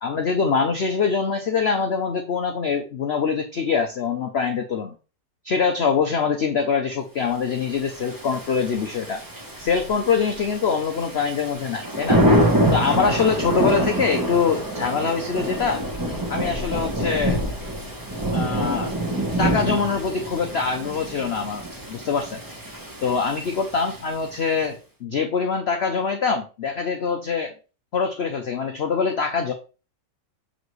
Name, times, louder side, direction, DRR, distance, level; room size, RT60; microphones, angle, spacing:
voice 1, 0.0-4.9 5.4-9.2 9.6-12.2 12.7-15.8 16.3-17.4 18.3-18.9 19.4-22.4 23.0-27.5 27.9-29.5, left 5 dB, 60° left, 5 dB, 0.6 m, -24 dB
Thunder / Rain, 7.8-24.3, equal, 15° right, 0.9 m, -26 dB
6.3 x 4.9 x 3.1 m, 0.34 s
omnidirectional pair, 1.9 m